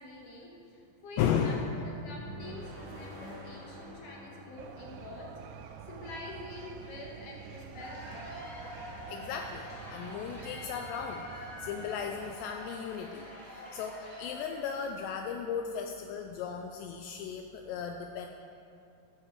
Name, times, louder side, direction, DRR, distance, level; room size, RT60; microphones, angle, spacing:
voice 1, 0.0-8.3, left 2 dB, 60° left, -2 dB, 2.4 m, -46 dB
voice 2, 1.2-1.7 9.1-18.3, left 7 dB, 85° left, 4 dB, 2.7 m, -35 dB
sound 1, 2.0-6.1, right 2 dB, 60° right, 3.2 m, -48 dB
sound 2, 4.6-12.4, right 7 dB, 90° right, 2.2 m, -48 dB
Cheering / Applause / Crowd, 7.5-15.2, equal, 40° left, 1.1 m, -46 dB
14.0 x 12.0 x 4.8 m, 2.6 s
omnidirectional pair, 5.3 m